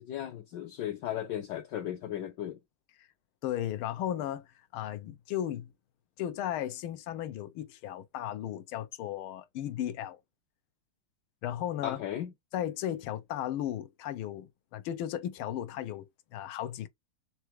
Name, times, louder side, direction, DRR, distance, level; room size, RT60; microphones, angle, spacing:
voice 1, 0.0-2.6 11.8-12.3, left 11 dB, 70° left, 1.1 m, -36 dB
voice 2, 3.4-5.7 6.2-10.2 11.4-12.0 12.5-16.9, left 11 dB, 90° left, 1.5 m, -35 dB
4.5 x 3.4 x 3.1 m
omnidirectional pair, 2.3 m